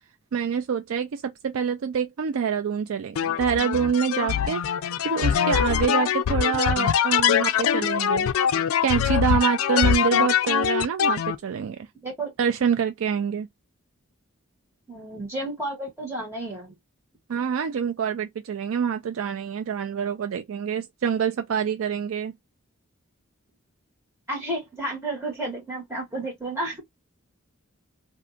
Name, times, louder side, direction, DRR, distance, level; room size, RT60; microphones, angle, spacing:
voice 1, 0.3-4.7 5.0-8.3 8.8-11.8 12.4-13.5 17.3-22.3, right 7 dB, 70° right, 0.4 m, -26 dB
sound 1, 3.2-11.4, left 8 dB, 75° left, 0.3 m, -23 dB
voice 2, 12.0-12.3 14.9-16.7 24.3-26.8, right 1 dB, 10° right, 1.3 m, -32 dB
2.6 x 2.4 x 2.5 m
head